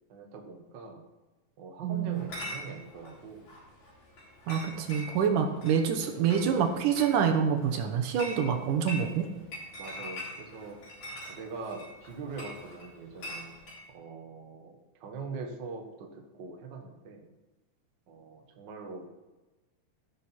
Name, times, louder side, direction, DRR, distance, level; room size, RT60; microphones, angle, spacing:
voice 1, 0.1-1.0 1.6-3.5 9.8-10.8 11.3-13.5 13.9-17.3 18.1-19.1, right 4 dB, 45° right, 1 dB, 1.6 m, -42 dB
voice 2, 1.8-2.3 4.5-9.3, right 7 dB, 80° right, 5 dB, 2.5 m, -27 dB
Chatter / Chink clink, 2.1-13.8, left 1 dB, 60° left, 5.0 m, -44 dB
16.0 x 6.3 x 4.4 m, 1.1 s
omnidirectional pair, 3.7 m